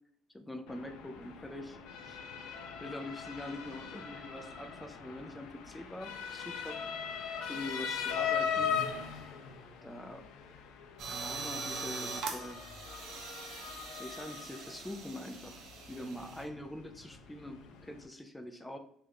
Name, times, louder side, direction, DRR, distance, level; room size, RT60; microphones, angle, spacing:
voice 1, 0.3-2.2 2.5-6.8 7.5-8.7 9.8-10.3 11.1-12.7 13.9-18.8, left 1 dB, 10° left, 5 dB, 0.3 m, -44 dB
Motor vehicle (road) / Siren, 0.7-18.1, left 7 dB, 85° left, 0.5 m, -40 dB
sound 1, 11.0-16.4, right 4 dB, 65° right, 0.6 m, -42 dB
3.2 x 2.5 x 3.1 m, 0.66 s
cardioid pair, 115°, 0 cm